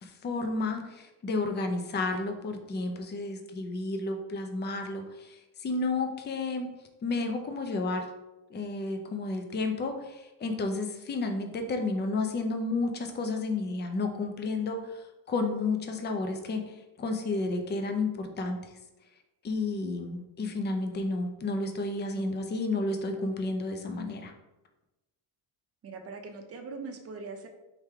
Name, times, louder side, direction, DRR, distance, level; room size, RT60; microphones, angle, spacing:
voice 1, 0.0-6.7 7.0-8.1 8.5-18.6 19.4-24.3, left 3 dB, 25° left, 5 dB, 0.5 m, -31 dB
voice 2, 25.8-27.5, right 4 dB, 35° right, 5 dB, 0.6 m, -41 dB
3.6 x 3.3 x 4.4 m, 1.0 s
cardioid pair, 140°, 42 cm